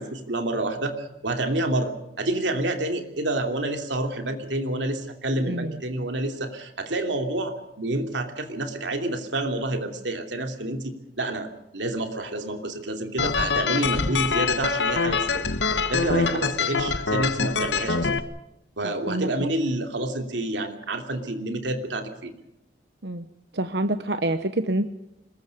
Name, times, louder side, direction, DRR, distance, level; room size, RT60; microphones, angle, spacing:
voice 1, 0.0-11.5 11.7-15.4 15.9-18.1 18.8-22.3, right 1 dB, 85° right, 5 dB, 3.0 m, -28 dB
voice 2, 5.5-5.8 18.8-19.3 23.0-23.2 23.5-24.9, right 1 dB, 70° right, 9 dB, 1.0 m, -27 dB
sound 1, 13.2-18.2, left 4 dB, 80° left, 1.4 m, -24 dB
26.0 x 22.0 x 5.3 m, 0.88 s
head